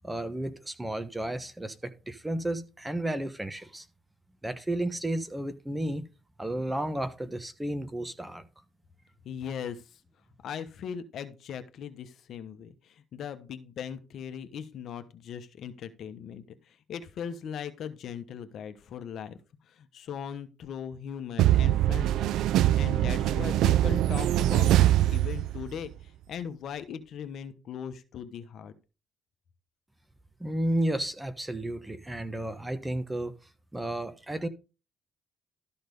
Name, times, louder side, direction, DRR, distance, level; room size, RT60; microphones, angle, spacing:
voice 1, 0.0-3.9 4.4-6.1 6.4-8.5 30.4-33.3 33.7-34.5, right 1 dB, 10° right, 1.1 m, -32 dB
voice 2, 9.2-10.0 10.4-19.4 19.6-22.3 22.8-28.7, left 8 dB, 65° left, 1.1 m, -39 dB
sound 1, 21.4-25.9, right 13 dB, 80° right, 0.4 m, -23 dB
13.0 x 4.3 x 5.3 m
cardioid pair, 85°, 0 cm